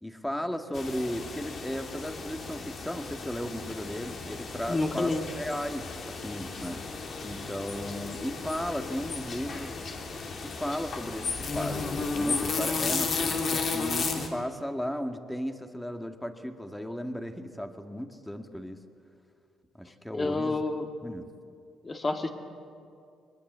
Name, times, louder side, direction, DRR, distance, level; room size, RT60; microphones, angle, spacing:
voice 1, 0.0-6.8 7.2-9.8 10.4-18.8 19.8-20.6 21.0-21.2, equal, 5° left, 6 dB, 1.9 m, -35 dB
sound 1, 0.7-14.3, left 4 dB, 55° left, 2.8 m, -34 dB
voice 2, 4.7-5.2 19.8-20.9 21.8-22.3, left 2 dB, 30° left, 4 dB, 2.3 m, -29 dB
23.5 x 20.5 x 8.1 m, 2.4 s
cardioid pair, 85°, 0 cm